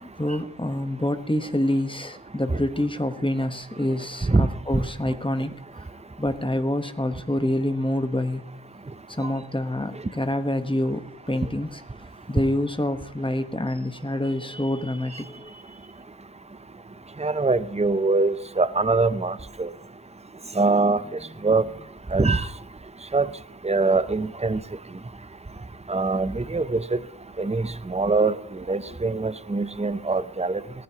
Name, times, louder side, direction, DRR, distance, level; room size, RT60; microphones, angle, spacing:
voice 1, 0.0-5.9 6.2-8.5 9.1-11.8 12.3-15.8, left 1 dB, 10° left, 8 dB, 1.1 m, -27 dB
voice 2, 17.2-19.7 20.6-21.0 21.4-21.6 22.1-22.5 23.1-23.3 23.6-24.6 25.9-27.0 27.4-28.3 28.7-30.6, right 3 dB, 15° right, 14 dB, 0.6 m, -23 dB
18.5 x 14.5 x 2.9 m, 0.70 s
wide cardioid pair, 50°, 44 cm